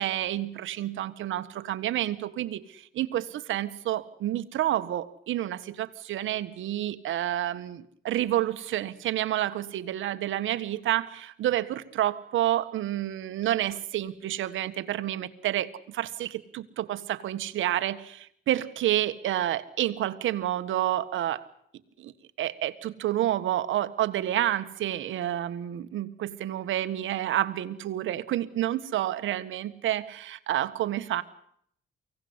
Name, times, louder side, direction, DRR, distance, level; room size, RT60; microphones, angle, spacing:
voice 1, 0.0-21.5 22.0-22.1 22.4-31.2, right 13 dB, 80° right, 11 dB, 1.6 m, -29 dB
24.0 x 17.5 x 9.7 m, 0.68 s
cardioid pair, 90°, 20 cm